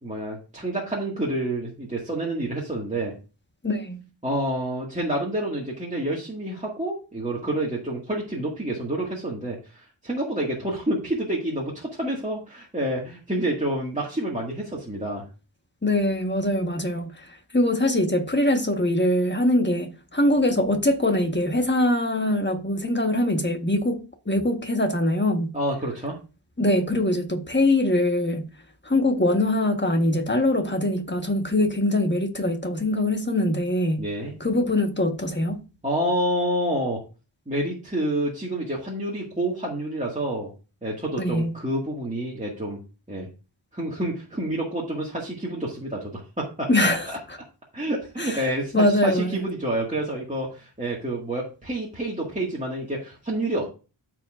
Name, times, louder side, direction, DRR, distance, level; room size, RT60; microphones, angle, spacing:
voice 1, 0.0-3.1 4.2-15.2 25.5-26.1 34.0-34.4 35.8-37.0 37.5-40.5 40.8-42.8 43.1-43.3 43.7-47.2 47.7-53.6, right 1 dB, 15° right, 1.8 m, -28 dB
voice 2, 3.6-4.0 15.8-17.3 17.5-25.5 26.6-28.5 28.8-34.0 34.4-35.6 41.2-41.5 46.7-47.4 48.2-48.4 48.7-49.4, left 1 dB, 20° left, 1.2 m, -23 dB
13.5 x 4.7 x 2.5 m
wide cardioid pair, 80°, 48 cm